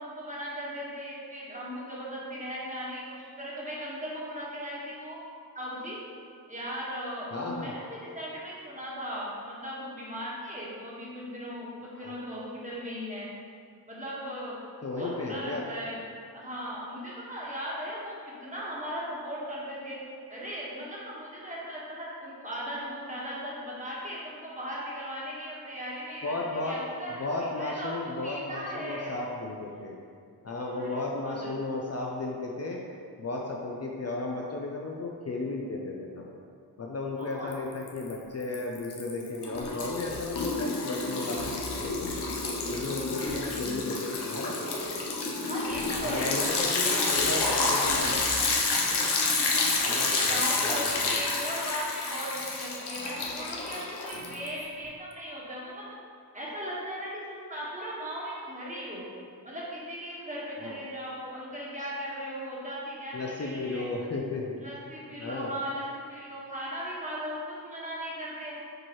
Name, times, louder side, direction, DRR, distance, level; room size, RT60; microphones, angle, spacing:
voice 1, 0.0-5.2 5.5-6.0 6.5-13.3 13.9-14.6 15.0-16.0 16.3-20.0 20.3-26.3 26.6-29.2 30.7-31.0 31.2-31.5 37.2-37.5 43.1-43.9 45.5-46.5 46.8-47.2 47.6-48.3 49.3-55.9 56.3-59.1 59.4-63.8 64.6-68.6, equal, 20° right, -7 dB, 1.5 m, -38 dB
voice 2, 7.3-7.7 12.0-12.1 14.8-15.6 26.2-26.8 27.2-29.9 30.4-32.8 33.2-36.3 36.8-42.1 42.7-44.6 46.0-48.3 48.8-49.1 49.9-50.8 51.0-51.4 60.6-60.8 63.1-64.6 65.2-65.6, left 2 dB, 40° left, -1 dB, 0.6 m, -34 dB
Liquid, 37.5-38.1 38.4-54.6, left 3 dB, 90° left, 0.9 m, -29 dB
7.5 x 4.5 x 3.1 m, 2.3 s
wide cardioid pair, 120°, 39 cm